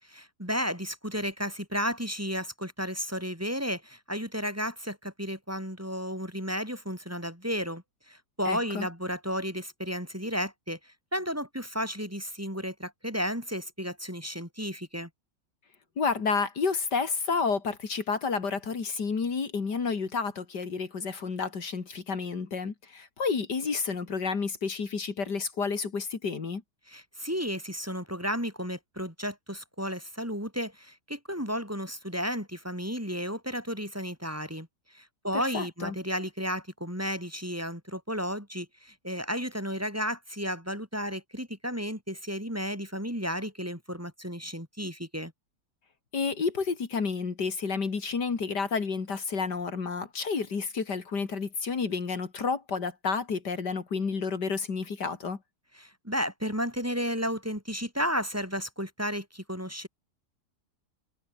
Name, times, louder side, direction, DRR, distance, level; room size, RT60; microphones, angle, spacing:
voice 1, 0.0-15.1 26.9-45.3 55.8-59.9, equal, 10° right, 5.1 m, -33 dB
voice 2, 8.5-8.9 16.0-26.6 35.3-36.0 46.1-55.4, left 5 dB, 75° left, 3.1 m, -30 dB
omnidirectional pair, 1.8 m